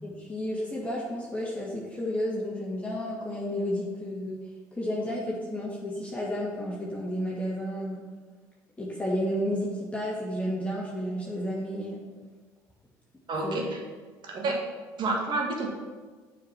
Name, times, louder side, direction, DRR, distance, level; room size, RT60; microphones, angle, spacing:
voice 1, 0.0-4.4 4.7-8.0 8.8-12.0 13.4-13.6, equal, 15° left, -5 dB, 2.2 m, -32 dB
voice 2, 13.3-13.8 14.2-14.6 15.0-15.7, right 2 dB, 50° right, 1 dB, 1.9 m, -29 dB
7.3 x 5.1 x 6.0 m, 1.4 s
hypercardioid pair, 65°, 10 cm